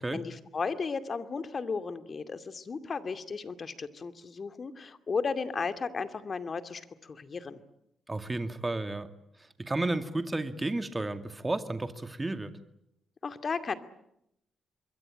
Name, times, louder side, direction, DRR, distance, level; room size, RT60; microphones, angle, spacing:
voice 1, 0.0-7.6 13.2-13.8, left 5 dB, 50° left, 10 dB, 2.5 m, -35 dB
voice 2, 8.1-9.1 9.4-12.5, right 2 dB, 25° right, 9 dB, 2.3 m, -32 dB
26.5 x 22.5 x 8.9 m, 0.81 s
hypercardioid pair, 45°, 0 cm